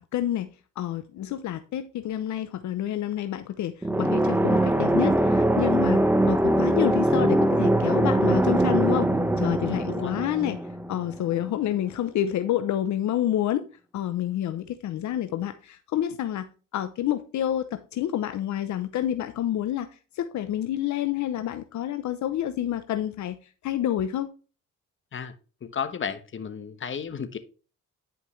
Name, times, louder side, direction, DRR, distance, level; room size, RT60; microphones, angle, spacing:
voice 1, 0.1-0.5 0.8-6.0 6.3-9.1 9.4-10.6 10.9-13.6 13.9-16.5 16.7-19.9 20.1-23.4 23.6-24.3, left 11 dB, 70° left, 0.7 m, -28 dB
sound 1, 3.8-11.5, right 1 dB, 5° right, 0.7 m, -22 dB
voice 2, 9.6-10.2 25.1-25.3 25.6-27.4, left 7 dB, 40° left, 1.1 m, -33 dB
10.0 x 5.3 x 3.1 m
cardioid pair, 90°, 30 cm